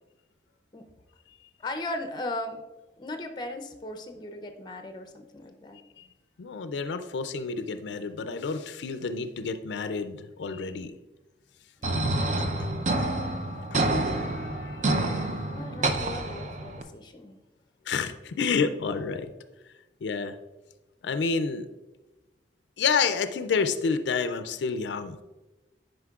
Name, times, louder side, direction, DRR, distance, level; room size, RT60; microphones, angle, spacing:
voice 1, 1.6-2.6 3.0-5.8 11.8-12.9 15.5-17.4, left 1 dB, 25° left, 6 dB, 0.5 m, -38 dB
voice 2, 6.4-10.9 12.6-12.7 13.0-13.1 13.7-13.8 14.1-15.3 17.9-19.3 20.0-20.4 21.0-21.7 22.8-25.2, left 5 dB, 80° left, 10 dB, 0.4 m, -29 dB
sound 1, 11.8-16.8, right 2 dB, 40° right, 0.5 m, -28 dB
9.5 x 5.1 x 2.3 m, 1.1 s
head